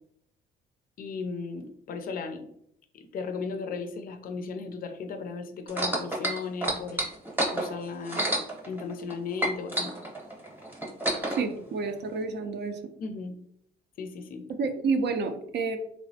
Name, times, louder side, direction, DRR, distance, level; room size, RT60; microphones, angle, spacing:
voice 1, 1.0-2.5 2.9-7.0 7.5-8.3 8.7-9.9 13.0-13.4 14.0-14.5, left 4 dB, 45° left, 5 dB, 0.4 m, -36 dB
sound 1, 5.7-9.1 9.4-11.4 12.2-12.3, right 1 dB, 10° right, 0.8 m, -29 dB
voice 2, 11.4-12.8 14.6-15.8, right 4 dB, 60° right, 6 dB, 0.4 m, -29 dB
3.2 x 2.0 x 2.6 m, 0.70 s
cardioid pair, 90°, 20 cm